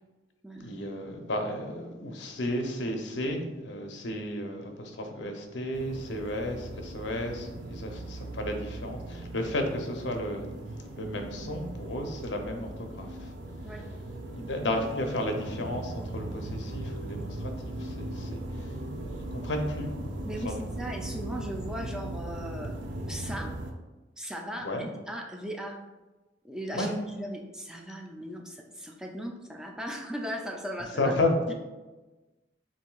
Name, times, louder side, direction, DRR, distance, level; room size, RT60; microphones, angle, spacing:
voice 1, 0.6-10.5 11.0-13.3 14.3-17.5 17.8-18.7 19.1-19.9 20.4-20.6 21.8-21.9 24.6-24.9 26.7-26.9 31.0-31.3, left 1 dB, 85° left, 4 dB, 0.7 m, -33 dB
sound 1, 5.7-23.7, right 1 dB, 85° right, 0.5 m, -38 dB
voice 2, 20.2-22.7 23.0-23.5 24.2-24.7 25.1-25.8 26.4-31.1 31.5-31.6, equal, 5° right, 1 dB, 0.4 m, -38 dB
7.0 x 2.7 x 2.3 m, 1.2 s
head